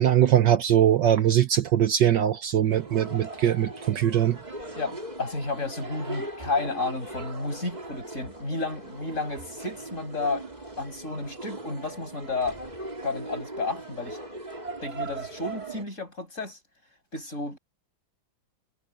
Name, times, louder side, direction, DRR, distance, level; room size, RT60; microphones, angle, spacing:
voice 1, 0.0-4.4, right 10 dB, 65° right, 1.4 m, -21 dB
sound 1, 2.7-15.8, right 2 dB, 20° right, 3.2 m, -39 dB
voice 2, 4.7-10.5 10.8-12.6 13.0-14.2 14.8-16.6 17.1-17.6, left 3 dB, 35° left, 6.8 m, -32 dB
omnidirectional pair, 2.2 m